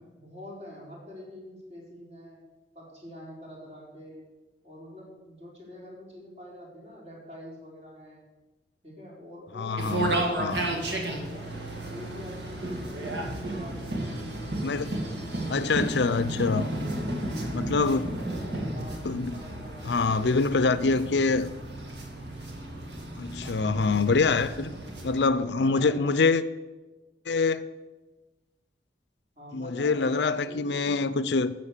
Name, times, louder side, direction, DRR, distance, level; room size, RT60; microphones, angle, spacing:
voice 1, 0.1-2.4 2.7-4.2 4.6-8.3 8.8-11.5 11.8-15.9 16.4-17.6 18.7-20.9 23.3-25.0 25.4-26.2 29.4-31.1, left 1 dB, 35° right, 4.1 m, -45 dB
voice 2, 9.5-10.6 14.6-14.9 15.5-16.7 17.5-18.0 19.0-19.4 19.8-21.5 23.2-24.7 25.0-26.4 27.3-27.6 29.5-31.5, left 4 dB, 65° left, 0.5 m, -25 dB
sound 1, 9.8-25.2, right 1 dB, 65° right, 2.2 m, -33 dB
13.0 x 7.7 x 6.7 m
head